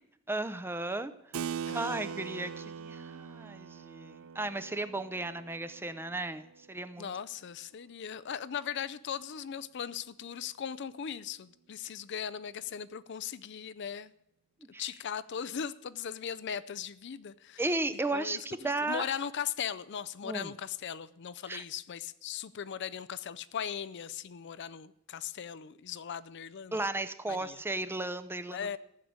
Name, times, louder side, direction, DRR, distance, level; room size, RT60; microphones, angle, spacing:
voice 1, 0.3-1.1 1.7-7.1 14.7-14.9 17.6-19.1 20.2-20.5 21.5-21.6 26.7-28.6, right 2 dB, 10° right, 0.6 m, -35 dB
Keyboard (musical), 1.3-7.4, right 7 dB, 70° right, 0.5 m, -42 dB
voice 2, 1.7-2.0 7.0-14.1 14.8-17.6 18.1-18.4 18.8-26.8 27.3-27.6 28.5-28.8, left 8 dB, 55° left, 0.5 m, -38 dB
15.0 x 6.6 x 9.4 m
head